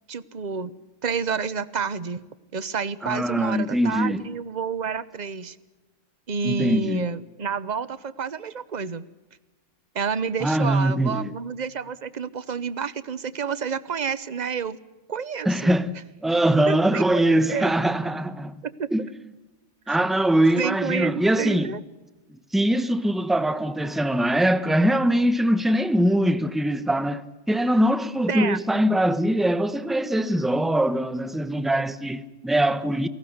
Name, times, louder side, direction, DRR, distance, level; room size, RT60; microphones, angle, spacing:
voice 1, 0.1-0.7 1.0-2.2 2.5-5.6 6.3-9.0 9.9-14.8 15.1-15.7 16.7-17.7 18.6-18.9 19.9-20.0 20.5-21.8 28.3-28.6, right 6 dB, 40° right, 1.0 m, -29 dB
voice 2, 3.0-4.2 6.4-7.1 10.4-11.3 15.4-15.9 16.2-18.6 18.9-19.1 19.9-21.7 22.3-33.1, right 1 dB, ahead, 0.9 m, -22 dB
28.5 x 18.5 x 8.0 m
omnidirectional pair, 1.3 m